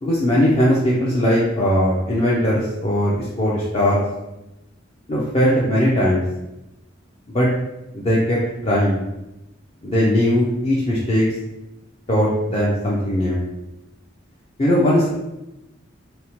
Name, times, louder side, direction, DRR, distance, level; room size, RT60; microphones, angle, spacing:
voice 1, 0.0-4.0 5.1-6.2 7.3-7.5 7.9-9.0 9.8-11.3 12.1-13.4 14.6-15.1, equal, 30° left, -6 dB, 0.4 m, -19 dB
2.9 x 2.0 x 2.8 m, 0.95 s
head